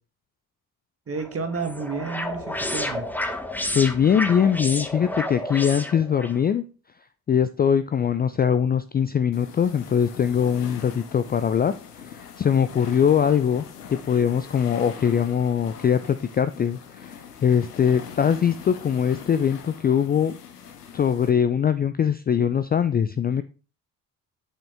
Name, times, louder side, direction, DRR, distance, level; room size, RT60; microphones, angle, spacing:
voice 1, 1.1-3.1, right 4 dB, 30° right, 6 dB, 1.5 m, -31 dB
sound 1, 1.2-6.4, left 1 dB, 5° left, 1.0 m, -31 dB
voice 2, 3.7-6.6 7.3-11.7 12.0-13.6 14.0-20.3 20.9-23.4, left 8 dB, 20° left, 12 dB, 0.4 m, -22 dB
sound 2, 9.3-21.3, left 7 dB, 90° left, 0.7 m, -42 dB
7.3 x 5.2 x 3.6 m, 0.36 s
figure-of-eight pair, 45°, 45 cm